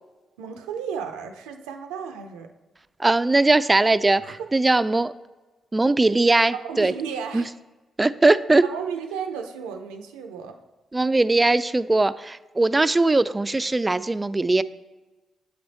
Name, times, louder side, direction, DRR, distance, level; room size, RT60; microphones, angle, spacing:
voice 1, 0.4-2.5 4.2-4.5 6.5-7.5 8.6-10.6, right 7 dB, 85° right, 5 dB, 0.5 m, -33 dB
voice 2, 3.0-5.1 5.7-6.9 7.3-7.4 8.0-8.6 10.9-14.6, right 2 dB, 25° right, 15 dB, 0.3 m, -20 dB
7.8 x 3.4 x 4.0 m, 1.2 s
hypercardioid pair, 45°, 0 cm